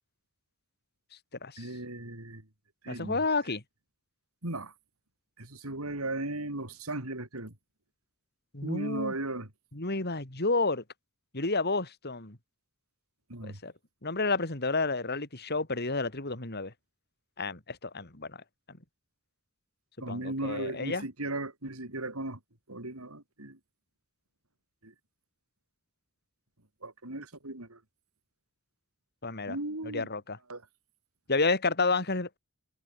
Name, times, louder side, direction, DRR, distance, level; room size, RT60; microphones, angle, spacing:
voice 1, 1.6-2.4 2.8-3.2 4.4-4.7 5.4-7.5 8.6-9.5 13.3-13.6 20.0-22.4 22.7-23.6 24.8-24.9 26.8-27.8 29.5-30.1 30.5-30.6, right 2 dB, 80° right, 4.6 m, -36 dB
voice 2, 2.9-3.6 8.5-9.1 9.7-10.8 11.3-12.4 13.4-13.7 14.0-16.7 17.4-18.4 18.7-18.8 20.1-21.1 29.2-29.6 29.9-30.4 31.3-32.4, left 3 dB, 50° left, 3.5 m, -30 dB
head